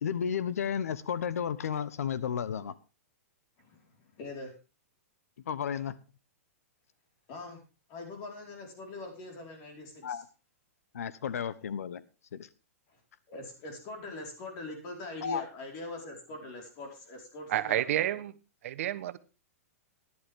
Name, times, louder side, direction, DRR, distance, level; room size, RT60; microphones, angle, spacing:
voice 1, 0.0-2.7 5.5-5.9 10.0-10.3 10.9-12.0 12.3-12.5 15.2-15.4, left 7 dB, 85° left, 1.0 m, -33 dB
voice 2, 3.6-4.5 7.3-7.6 7.9-10.2 12.9-13.0 13.3-18.1, left 2 dB, 45° left, 4.7 m, -43 dB
voice 3, 17.5-18.3 18.6-19.2, right 12 dB, 65° right, 1.1 m, -29 dB
15.0 x 11.0 x 3.6 m
hypercardioid pair, 130°, 8 cm